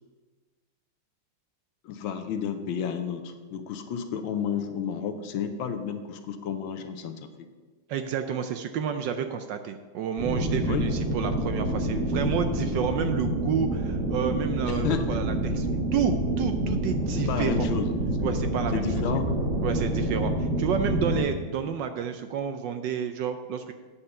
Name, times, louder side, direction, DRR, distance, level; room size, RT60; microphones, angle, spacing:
voice 1, 1.8-7.2 10.6-10.9 14.6-15.2 17.1-17.9 18.2-18.4 18.7-19.3, left 7 dB, 75° left, 7 dB, 1.5 m, -31 dB
voice 2, 7.9-17.7 18.2-18.9 19.6-23.7, right 7 dB, 75° right, 8 dB, 1.1 m, -30 dB
sound 1, 10.2-21.2, right 1 dB, 30° right, 1.4 m, -27 dB
8.4 x 5.5 x 6.7 m, 1.4 s
omnidirectional pair, 2.3 m